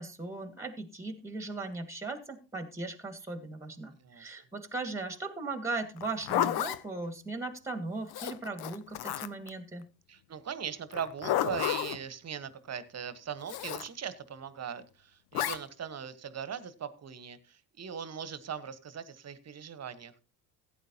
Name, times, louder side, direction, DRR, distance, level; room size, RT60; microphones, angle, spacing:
voice 1, 0.0-9.9, right 3 dB, 5° right, 8 dB, 1.9 m, -38 dB
voice 2, 4.0-4.3 10.1-20.1, right 7 dB, 35° right, 14 dB, 1.3 m, -40 dB
Zipper (clothing), 6.0-6.8 8.1-9.5 10.9-12.0 13.5-13.9 15.3-15.6, left 12 dB, 55° left, 0.8 m, -31 dB
16.0 x 9.0 x 2.9 m, 0.34 s
hypercardioid pair, 65°, 47 cm